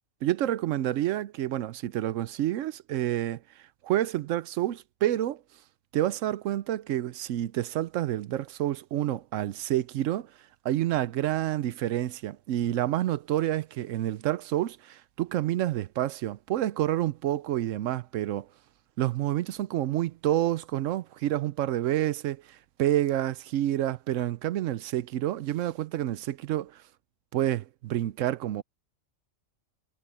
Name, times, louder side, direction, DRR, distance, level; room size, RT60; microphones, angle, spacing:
voice 1, 0.2-3.4 3.8-5.4 5.9-10.3 10.6-18.5 19.0-26.8 27.3-28.6, right 13 dB, 70° right, 0.9 m, -28 dB
omnidirectional pair, 1.4 m